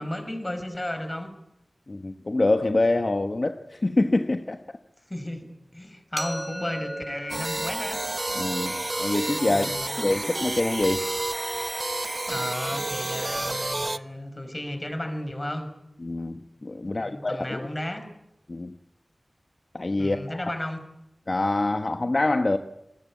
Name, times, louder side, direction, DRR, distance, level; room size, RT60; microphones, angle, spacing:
voice 1, 0.0-1.3 5.1-8.0 9.5-10.0 12.3-15.7 16.9-18.1 20.0-20.8, left 1 dB, 25° left, 5.2 m, -34 dB
voice 2, 1.9-4.8 8.4-11.1 16.0-17.7 18.5-18.8 19.7-20.5 21.3-22.6, left 2 dB, 55° left, 1.2 m, -26 dB
sound 1, 6.2-12.0, equal, 15° right, 5.1 m, -40 dB
sound 2, 7.3-14.0, right 2 dB, 45° right, 1.0 m, -30 dB
29.5 x 20.0 x 8.5 m
wide cardioid pair, 50°, 0 cm